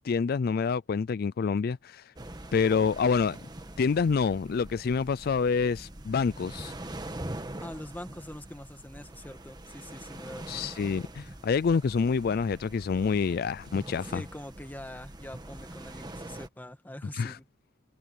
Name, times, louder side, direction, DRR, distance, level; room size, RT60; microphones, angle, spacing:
voice 1, 0.0-2.1 2.5-3.4 3.8-6.7 10.5-14.2 17.1-17.4, left 5 dB, 50° left, 0.4 m, -27 dB
sound 1, 2.2-16.5, right 1 dB, 20° right, 1.5 m, -43 dB
voice 2, 7.6-10.7 14.1-17.5, left 1 dB, 10° left, 1.9 m, -43 dB
head